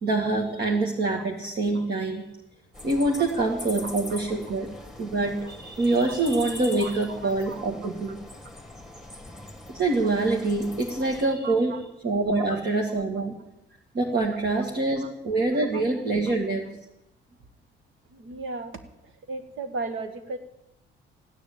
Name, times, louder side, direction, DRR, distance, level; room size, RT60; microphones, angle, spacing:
voice 1, 0.0-2.3 2.8-4.7 5.0-8.1 9.7-11.8 12.0-13.3 13.9-16.7, right 2 dB, 55° right, 0 dB, 2.2 m, -25 dB
sound 1, 2.7-11.3, left 2 dB, ahead, 2.1 m, -42 dB
voice 2, 7.2-7.7 11.2-11.8 12.3-12.4 15.0-15.1 15.7-15.8 18.1-20.4, right 3 dB, 80° right, 9 dB, 1.9 m, -36 dB
15.5 x 10.0 x 8.7 m, 0.87 s
cardioid pair, 135°, 20 cm